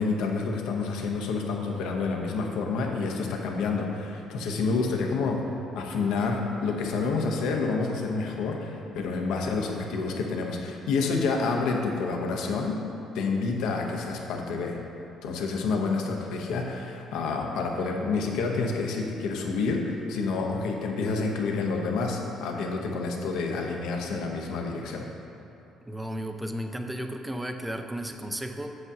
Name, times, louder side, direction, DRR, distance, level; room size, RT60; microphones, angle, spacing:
voice 1, 0.0-5.4 5.7-12.8 13.1-14.8 15.2-25.1, left 4 dB, 90° left, 1 dB, 0.8 m, -28 dB
voice 2, 25.9-28.8, equal, 10° right, 5 dB, 0.4 m, -34 dB
7.8 x 7.2 x 2.7 m, 2.7 s
cardioid pair, 125°, 0 cm